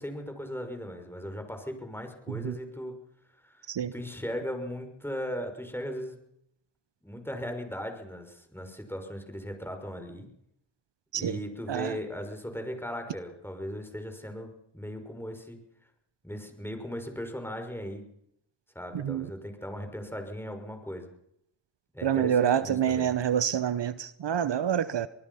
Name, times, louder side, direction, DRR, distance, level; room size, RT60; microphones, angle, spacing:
voice 1, 0.0-3.0 3.4-6.2 7.0-10.3 11.2-15.6 16.2-18.0 18.7-21.1 21.9-23.1, equal, 5° left, 5 dB, 5.7 m, -38 dB
voice 2, 18.9-19.3 22.0-25.1, right 9 dB, 65° right, 15 dB, 0.9 m, -27 dB
25.0 x 19.5 x 5.7 m, 0.77 s
cardioid pair, 50°, 45 cm